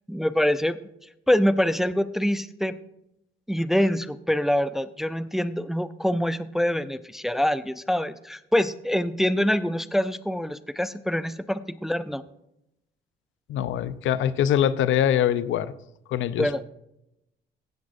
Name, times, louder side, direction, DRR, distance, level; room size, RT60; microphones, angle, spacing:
voice 1, 0.1-0.8 1.3-2.8 3.5-12.2 16.4-16.6, equal, ahead, 13 dB, 0.4 m, -25 dB
voice 2, 13.5-15.7 16.1-16.6, left 10 dB, 75° left, 15 dB, 0.6 m, -23 dB
16.0 x 7.4 x 2.6 m, 0.83 s
cardioid pair, 90°, 20 cm